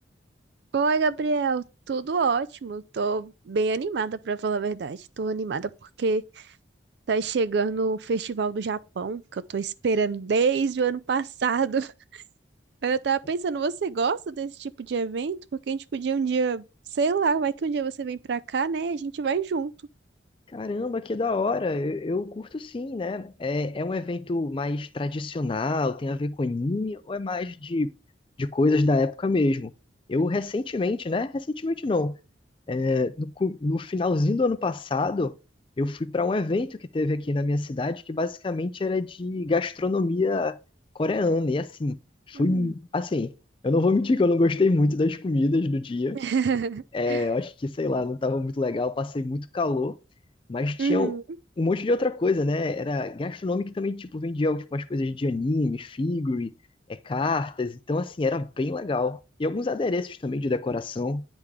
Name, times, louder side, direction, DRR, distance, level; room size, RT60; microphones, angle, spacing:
voice 1, 0.7-5.7 6.0-6.4 7.1-12.2 12.8-16.6 16.9-19.7 42.3-42.7 46.1-47.3 50.8-51.2, right 5 dB, 65° right, 0.4 m, -27 dB
voice 2, 20.5-27.9 28.4-29.7 30.1-32.1 32.7-35.3 35.8-40.6 41.0-42.0 42.3-43.3 43.6-46.2 46.9-50.0 50.5-51.2 51.6-56.5 56.9-61.2, left 2 dB, 30° left, 0.4 m, -26 dB
9.9 x 3.6 x 3.2 m
head